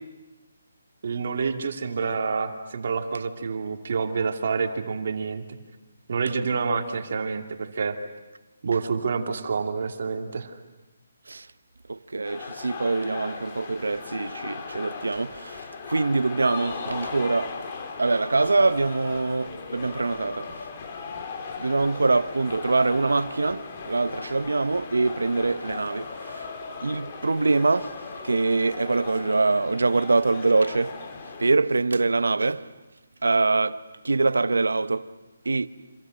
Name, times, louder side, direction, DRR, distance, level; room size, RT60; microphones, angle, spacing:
voice 1, 1.0-5.4 6.1-8.0 8.6-10.5, right 5 dB, 55° right, 2.5 m, -28 dB
voice 2, 11.9-17.6 18.0-20.7 21.6-26.5 26.8-27.9 28.2-31.0 31.4-32.7 33.2-35.1 35.4-35.7, right 3 dB, 90° right, 1.0 m, -24 dB
sound 1, 12.2-31.5, left 5 dB, 35° left, 3.0 m, -38 dB
29.0 x 26.0 x 6.5 m
hypercardioid pair, 160°, 0 cm